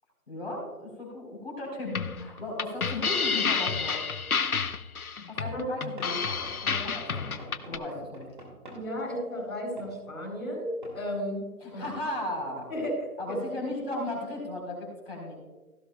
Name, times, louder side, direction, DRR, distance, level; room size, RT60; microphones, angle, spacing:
voice 1, 0.3-4.0 5.3-8.3 11.6-12.7 13.2-15.3, left 1 dB, 40° left, -3 dB, 3.9 m, -36 dB
sound 1, 1.9-7.8, left 5 dB, 70° left, 0.9 m, -30 dB
Knock / Wood, 6.0-8.9 9.8-9.9 10.8-11.0 11.8-12.0, right 1 dB, 35° right, 2.2 m, -46 dB
voice 2, 8.7-11.4 11.7-11.8 12.7-13.4, equal, 10° left, -14 dB, 3.9 m, -34 dB
16.0 x 10.5 x 2.3 m, 1.1 s
figure-of-eight pair, 175°, 45 cm